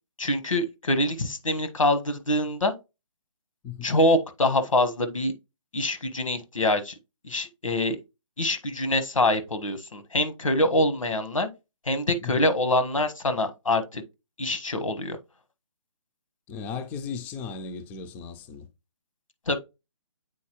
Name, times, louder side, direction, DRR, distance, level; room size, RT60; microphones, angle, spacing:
voice 1, 0.2-2.7 3.8-5.3 5.7-6.9 7.2-8.0 8.4-11.5 11.8-14.0 14.4-15.2 19.5-19.6, left 1 dB, 90° left, 1.3 m, -25 dB
voice 2, 16.5-18.7, left 6 dB, 10° left, 0.4 m, -36 dB
8.5 x 4.0 x 3.0 m
figure-of-eight pair, 145°, 16 cm